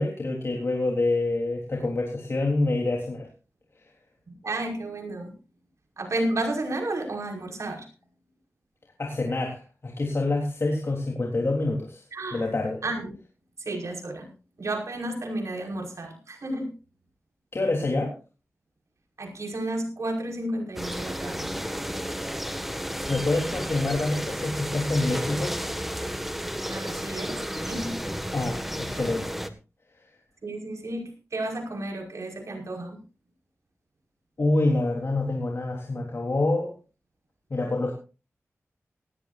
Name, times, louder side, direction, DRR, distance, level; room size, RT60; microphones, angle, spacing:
voice 1, 0.0-3.3 9.0-12.0 12.3-12.8 17.5-18.1 23.1-25.6 28.3-29.4 34.4-36.7 37.5-37.9, left 2 dB, 55° left, 0 dB, 3.6 m, -26 dB
voice 2, 4.3-5.4 6.0-7.9 12.1-12.5 12.8-13.1 13.6-14.3 14.6-16.7 19.2-21.6 26.7-28.0 30.4-33.0, right 1 dB, 75° right, 2 dB, 5.4 m, -32 dB
sound 1, 20.8-29.5, equal, 5° right, 1.8 m, -32 dB
18.5 x 16.0 x 2.6 m, 0.33 s
wide cardioid pair, 70°, 5 cm